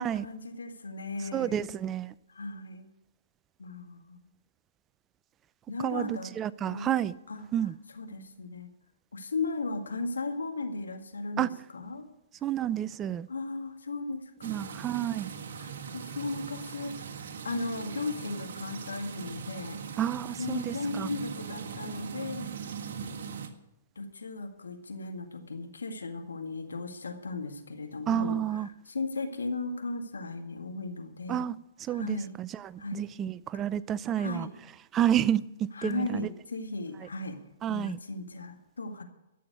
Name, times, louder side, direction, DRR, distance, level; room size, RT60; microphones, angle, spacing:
voice 1, 0.0-1.6 2.4-2.9 3.6-4.2 5.7-6.3 6.7-6.9 7.3-7.4 8.0-8.7 9.1-12.1 13.3-14.6 15.6-19.8 20.4-22.5 24.0-28.4 28.9-31.5 31.9-32.4 32.8-33.1 34.1-34.5 35.8-37.4 37.7-39.0, left 3 dB, 85° left, 2.0 m, -36 dB
voice 2, 1.3-2.1 5.8-7.2 7.5-7.8 11.4-11.5 12.4-13.3 14.4-15.3 20.0-21.1 28.1-28.7 31.3-34.5 34.9-36.3 37.6-38.0, right 10 dB, 20° right, 0.5 m, -30 dB
sound 1, 14.4-23.5, right 6 dB, 60° right, 1.7 m, -40 dB
13.0 x 7.1 x 9.4 m
hypercardioid pair, 125°, 0 cm